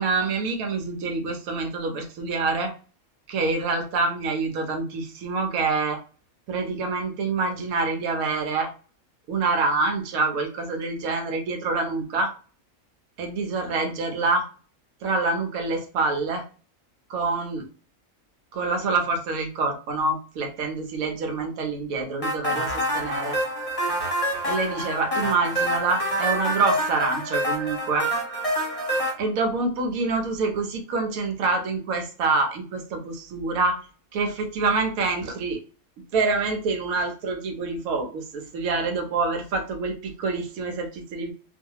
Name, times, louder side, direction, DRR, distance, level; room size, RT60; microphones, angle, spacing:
voice 1, 0.0-2.7 3.3-6.0 6.5-8.7 9.3-12.3 13.2-14.5 15.0-16.4 17.1-17.7 18.5-23.4 24.4-28.1 29.2-33.8 34.1-35.6 36.1-41.3, right 3 dB, 85° right, 3 dB, 1.1 m, -26 dB
sound 1, 22.2-29.1, right 1 dB, 30° left, 0.7 m, -27 dB
2.7 x 2.3 x 2.7 m, 0.37 s
omnidirectional pair, 1.4 m